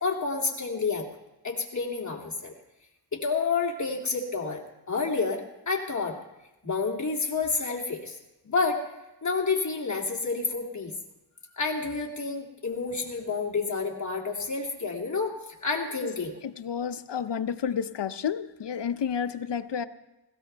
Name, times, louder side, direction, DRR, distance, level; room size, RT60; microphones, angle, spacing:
voice 1, 0.0-1.1 1.4-2.5 3.1-6.2 6.6-8.2 8.4-8.8 9.2-10.9 11.5-15.3 15.6-16.4, left 4 dB, 40° left, 0 dB, 2.7 m, -29 dB
voice 2, 16.4-19.9, left 7 dB, 75° left, 12 dB, 0.7 m, -30 dB
20.0 x 16.5 x 3.4 m, 0.96 s
wide cardioid pair, 85°, 43 cm